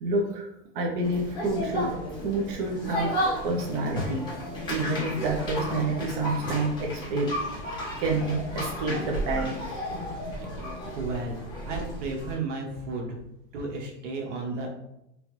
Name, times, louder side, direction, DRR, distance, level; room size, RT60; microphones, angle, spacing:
voice 1, 0.0-0.5 0.7-1.9 2.2-3.1 3.4-4.2 4.7-7.3 8.0-9.6, right 2 dB, 50° right, 0 dB, 0.9 m, -28 dB
sound 1, 1.0-12.3, equal, 10° left, 1.6 m, -33 dB
voice 2, 10.9-13.2 13.5-14.7, right 3 dB, 85° right, 1 dB, 1.3 m, -33 dB
3.8 x 3.4 x 3.2 m, 0.85 s
supercardioid pair, 160°, 35 cm